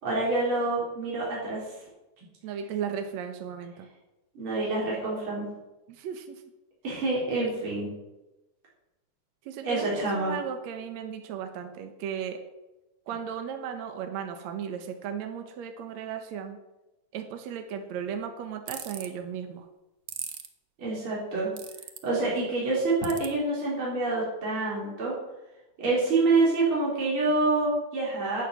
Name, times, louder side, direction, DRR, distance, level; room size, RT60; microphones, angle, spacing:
voice 1, 0.0-1.6 4.3-5.5 6.8-7.9 9.6-10.4 20.8-21.5 22.0-25.1 25.8-28.4, right 3 dB, 40° right, -5 dB, 5.1 m, -27 dB
voice 2, 2.4-3.9 5.9-6.4 9.5-12.4 13.1-16.6 17.1-19.7, right 8 dB, 65° right, 6 dB, 2.4 m, -35 dB
sound 1, 18.7-19.1 20.1-20.5 21.6-22.0 23.0-23.3, right 9 dB, 90° right, 0.9 m, -37 dB
11.0 x 9.3 x 7.8 m, 1.0 s
omnidirectional pair, 3.5 m